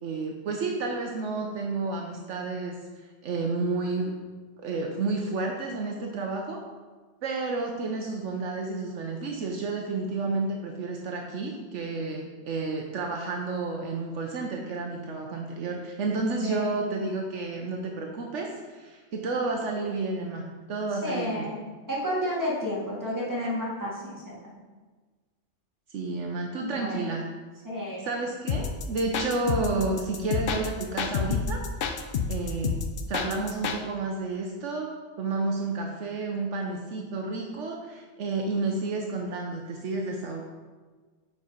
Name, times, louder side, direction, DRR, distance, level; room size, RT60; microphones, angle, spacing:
voice 1, 0.0-4.1 4.6-6.6 7.2-21.5 25.9-27.2 28.0-31.6 32.3-32.8 33.1-34.9 35.2-40.4, right 3 dB, 75° right, 1 dB, 1.1 m, -31 dB
voice 2, 16.4-16.8 21.0-21.6 21.9-24.4 26.6-27.0 27.6-28.1, left 1 dB, 15° right, -7 dB, 2.2 m, -31 dB
sound 1, 28.5-33.8, left 6 dB, 60° left, 0.7 m, -29 dB
6.8 x 4.9 x 5.0 m, 1.4 s
omnidirectional pair, 1.3 m